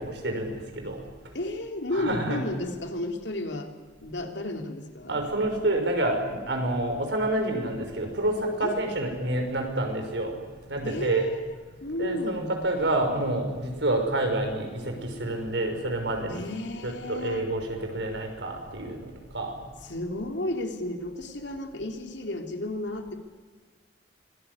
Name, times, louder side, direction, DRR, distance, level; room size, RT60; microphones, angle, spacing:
voice 1, 0.2-1.0 1.9-2.4 5.1-8.3 8.6-10.3 10.7-11.3 12.0-14.9 15.2-16.4 16.8-19.0 19.3-19.5, right 1 dB, 70° right, 4 dB, 5.8 m, -28 dB
voice 2, 1.3-3.7 4.0-5.2 8.6-8.8 10.8-11.4 11.8-12.5 16.3-17.5 19.8-23.1, left 1 dB, 70° left, 4 dB, 3.2 m, -32 dB
25.0 x 19.0 x 9.6 m, 1.4 s
head